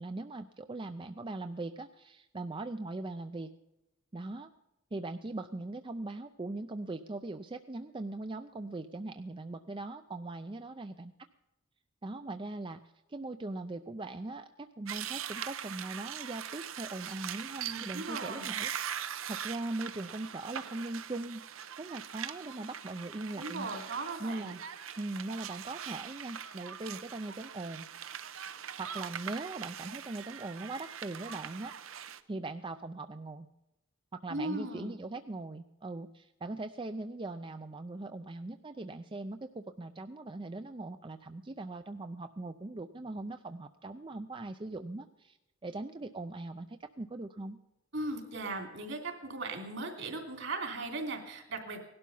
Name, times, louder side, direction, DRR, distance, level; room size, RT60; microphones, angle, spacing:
voice 1, 0.0-3.5 4.1-4.5 4.9-11.1 12.0-12.8 13.1-18.7 19.3-21.4 21.8-23.7 24.2-24.6 25.0-27.9 28.5-31.7 32.3-33.5 34.1-45.4 45.6-47.6, right 2 dB, 25° right, 9 dB, 0.5 m, -40 dB
sound 1, 14.9-32.2, right 9 dB, 80° right, 0.9 m, -42 dB
voice 2, 17.6-18.5 23.3-24.5 34.3-34.9 47.9-51.8, right 2 dB, 60° right, 4 dB, 3.1 m, -38 dB
18.5 x 12.0 x 5.5 m, 0.93 s
head